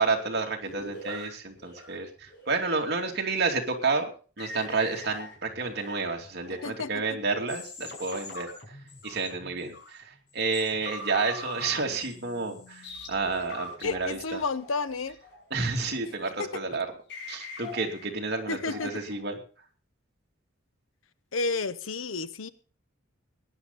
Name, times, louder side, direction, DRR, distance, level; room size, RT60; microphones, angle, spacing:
voice 1, 0.0-4.0 4.4-8.5 9.0-14.4 15.5-16.9 17.3-19.4, right 4 dB, 55° right, 2 dB, 2.8 m, -30 dB
sound 1, 0.6-2.7 3.0-3.4 3.7-4.0 4.4-6.7 7.1-10.0 10.4-16.3 16.6-16.7 17.1-19.1, left 2 dB, 60° left, 5.7 m, -44 dB
voice 2, 6.6-7.2 13.8-15.2 16.4-16.6 18.5-18.9 21.3-22.5, left 4 dB, 85° left, 14 dB, 1.0 m, -31 dB
18.0 x 10.5 x 4.2 m, 0.38 s
head